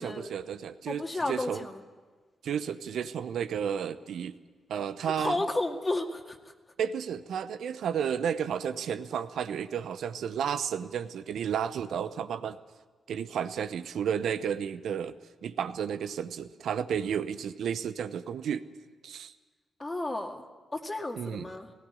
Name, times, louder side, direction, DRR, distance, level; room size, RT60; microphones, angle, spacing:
voice 1, 0.0-1.7 2.4-4.3 4.7-5.4 6.8-12.6 13.1-18.6 19.0-19.3 21.2-21.5, right 8 dB, 75° right, 12 dB, 0.8 m, -32 dB
voice 2, 0.9-1.8 5.0-6.4 19.8-20.4 20.7-21.7, left 2 dB, 30° left, 3 dB, 2.1 m, -32 dB
17.0 x 16.0 x 9.7 m, 1.4 s
hypercardioid pair, 45°, 0 cm